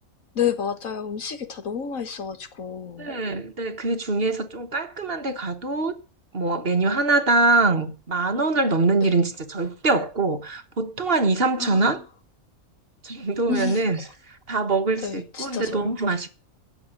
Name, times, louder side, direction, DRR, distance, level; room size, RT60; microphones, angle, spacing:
voice 1, 0.4-3.1 9.0-9.2 11.6-12.0 13.5-13.9 15.0-16.0, left 7 dB, 75° left, 1.9 m, -30 dB
voice 2, 3.0-5.9 6.3-12.0 13.0-14.0 14.5-16.3, right 3 dB, 45° right, 1.6 m, -23 dB
18.0 x 7.5 x 6.6 m
omnidirectional pair, 1.4 m